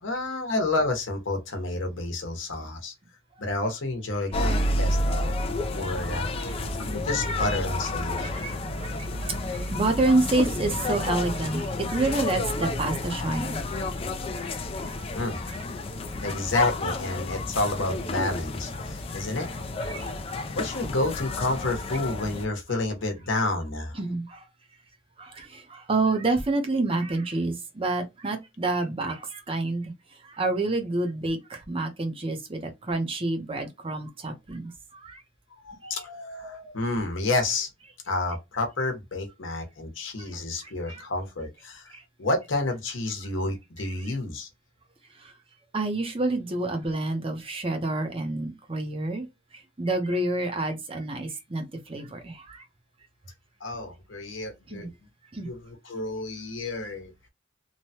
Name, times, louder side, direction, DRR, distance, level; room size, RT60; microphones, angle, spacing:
voice 1, 0.0-2.9 3.4-5.3 5.7-6.3 6.8-8.3 15.1-15.4 16.2-19.5 20.6-24.0 35.6-37.7 38.1-41.9 42.2-44.5 53.6-54.9 55.4-57.1, left 2 dB, 75° left, 0.9 m, -30 dB
sound 1, 4.3-22.5, left 2 dB, 30° left, 0.3 m, -30 dB
voice 2, 8.2-8.9 9.2-13.6 14.8-15.0 19.9-20.1 24.0-24.4 25.2-29.9 30.2-35.2 40.6-41.0 41.9-42.0 45.7-49.3 49.8-52.6 54.7-54.9 55.3-55.5, right 2 dB, 30° right, 0.6 m, -28 dB
3.1 x 2.1 x 2.7 m
head